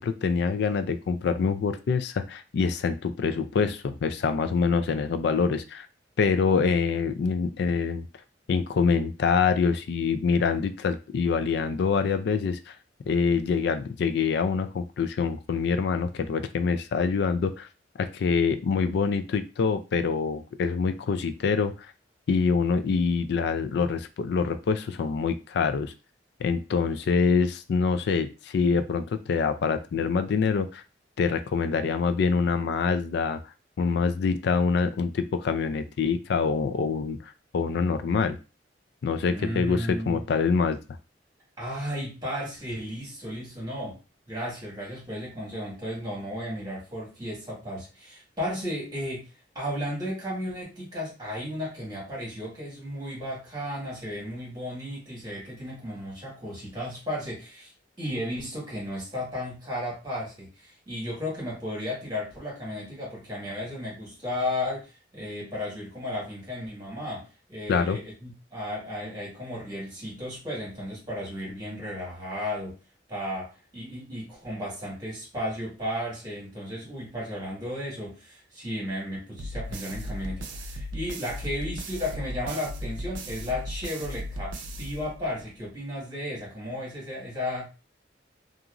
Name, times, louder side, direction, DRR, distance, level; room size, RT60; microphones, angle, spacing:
voice 1, 0.0-5.9 6.2-8.1 8.5-12.6 13.1-17.7 18.0-21.7 22.3-25.9 26.4-30.8 31.2-33.4 33.8-38.4 39.0-40.8 67.7-68.0, left 5 dB, 65° left, 10 dB, 0.3 m, -25 dB
voice 2, 39.3-40.2 41.6-44.0 44.3-49.3 49.5-57.7 58.0-72.8 73.1-87.7, left 1 dB, 25° right, -4 dB, 1.6 m, -34 dB
sound 1, 79.4-85.5, equal, 85° right, 0.5 m, -36 dB
2.9 x 2.4 x 2.4 m, 0.31 s
head